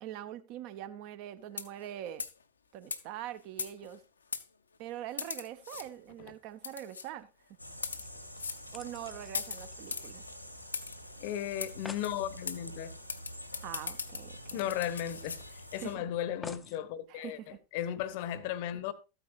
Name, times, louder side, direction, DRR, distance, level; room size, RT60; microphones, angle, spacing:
voice 1, 0.0-2.2 2.7-4.0 4.8-7.3 8.7-10.2 13.6-14.7 15.7-16.0 17.1-17.6, right 12 dB, 45° right, 0.9 m, -43 dB
sound 1, 1.5-1.9 2.2-2.4 2.9-3.0 3.6-4.0 4.3-4.5 5.2-5.9 6.6-7.1 7.7-8.1 8.4-8.6 9.3-10.1 10.7-11.0 11.6-11.7 12.0-12.1 12.5-12.6 13.1-15.4, left 5 dB, 75° left, 0.7 m, -38 dB
sound 2, 7.6-15.9, equal, 90° left, 1.4 m, -47 dB
sound 3, 8.0-10.7 10.9-11.0 11.3-11.4 11.6-12.2 13.7-13.8 14.1-14.2 14.8-15.8 16.4-16.8 17.6-17.7, left 4 dB, 15° left, 0.6 m, -50 dB
voice 2, 11.2-12.9 14.5-15.4 15.7-17.4 17.7-18.9, left 11 dB, 50° left, 0.9 m, -35 dB
13.0 x 9.0 x 2.5 m
figure-of-eight pair, 90°, 0 cm